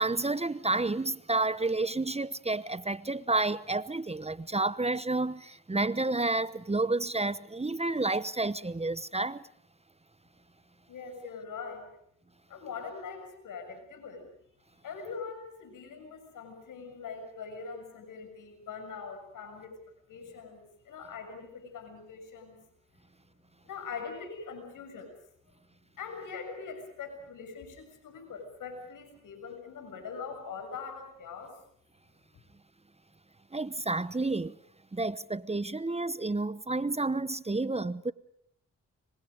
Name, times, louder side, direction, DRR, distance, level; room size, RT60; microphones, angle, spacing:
voice 1, 0.0-9.5 33.5-34.5 34.9-38.1, right 2 dB, 20° right, 1.0 m, -30 dB
voice 2, 10.9-11.9 12.5-14.3 14.8-19.8 20.1-22.6 23.6-25.1 26.0-31.5, left 5 dB, 85° left, 6.9 m, -42 dB
28.0 x 24.5 x 5.2 m
cardioid pair, 50°, 31 cm